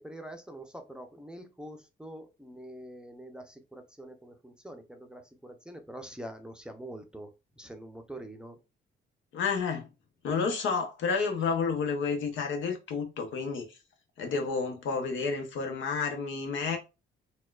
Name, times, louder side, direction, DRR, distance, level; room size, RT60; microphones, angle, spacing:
voice 1, 0.0-7.3 7.6-8.6, right 1 dB, 5° right, 0.5 m, -45 dB
voice 2, 9.3-9.8 10.2-13.7 14.2-16.8, left 5 dB, 75° left, 0.8 m, -30 dB
4.1 x 2.2 x 2.3 m
cardioid pair, 90°, 20 cm